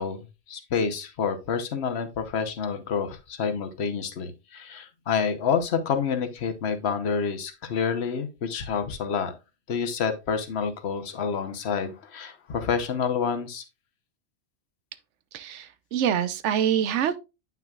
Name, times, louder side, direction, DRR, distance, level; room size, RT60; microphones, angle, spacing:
voice 1, 0.0-9.3 9.7-13.6, left 6 dB, 65° left, 1.2 m, -28 dB
voice 2, 15.3-17.2, right 9 dB, 85° right, 1.0 m, -25 dB
9.0 x 5.9 x 2.3 m
omnidirectional pair, 1.2 m